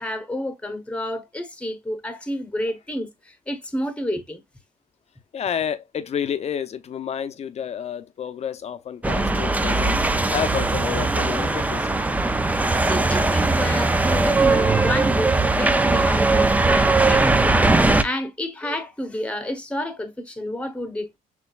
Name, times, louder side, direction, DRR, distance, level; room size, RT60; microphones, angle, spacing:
voice 1, 0.0-4.4 12.8-21.2, left 1 dB, 5° left, 1.0 m, -30 dB
voice 2, 5.3-10.0 10.3-11.9, left 8 dB, 40° left, 0.7 m, -29 dB
sound 1, 9.0-18.0, right 3 dB, 10° right, 0.4 m, -20 dB
5.8 x 3.2 x 2.4 m
cardioid pair, 110°, 17 cm